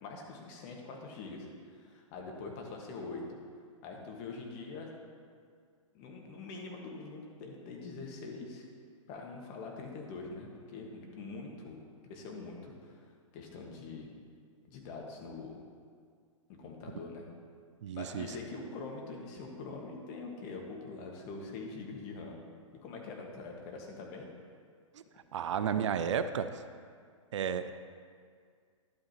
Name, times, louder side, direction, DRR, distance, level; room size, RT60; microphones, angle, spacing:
voice 1, 0.0-3.4 3.8-4.9 5.9-8.6 9.1-11.8 12.0-13.1 13.3-14.1 14.7-15.6 16.6-17.3 17.9-22.4 22.8-24.3, left 3 dB, 40° left, 0 dB, 1.6 m, -44 dB
voice 2, 17.8-18.3 25.3-26.5 27.3-27.7, right 8 dB, 60° right, 11 dB, 0.5 m, -32 dB
11.0 x 8.6 x 3.0 m, 2.1 s
hypercardioid pair, 120°, 17 cm